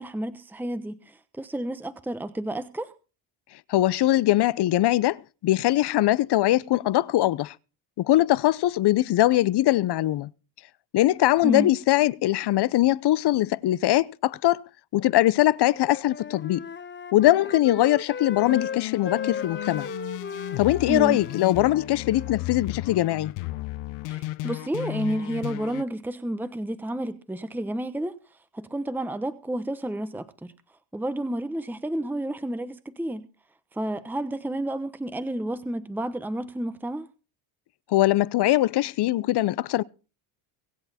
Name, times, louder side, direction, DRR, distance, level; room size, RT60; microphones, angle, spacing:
voice 1, 0.0-2.9 11.4-11.7 20.8-21.2 24.1-28.2 28.5-30.5 30.9-33.3 33.7-37.1, right 1 dB, 5° right, 1.0 m, -31 dB
voice 2, 3.7-7.5 8.0-10.3 10.9-14.6 14.9-16.7 17.1-19.9 20.6-23.3 37.9-39.8, left 15 dB, 55° left, 0.8 m, -22 dB
Wind instrument woodwind instrument, 15.6-22.4, left 6 dB, 20° left, 1.0 m, -36 dB
sound 1, 18.4-25.8, left 18 dB, 85° left, 0.9 m, -35 dB
23.5 x 7.9 x 4.3 m
supercardioid pair, 90°, 50 cm